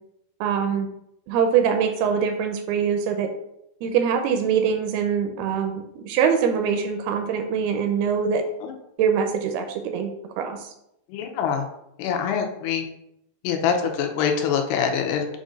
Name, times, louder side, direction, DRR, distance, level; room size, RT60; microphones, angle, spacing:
voice 1, 0.4-0.9 1.3-3.3 3.8-8.4 9.0-10.7, right 7 dB, 80° right, 5 dB, 2.4 m, -23 dB
voice 2, 11.1-11.6 12.0-12.8 13.4-15.3, left 7 dB, 85° left, 4 dB, 2.7 m, -24 dB
7.5 x 2.5 x 5.2 m, 0.80 s
omnidirectional pair, 4.7 m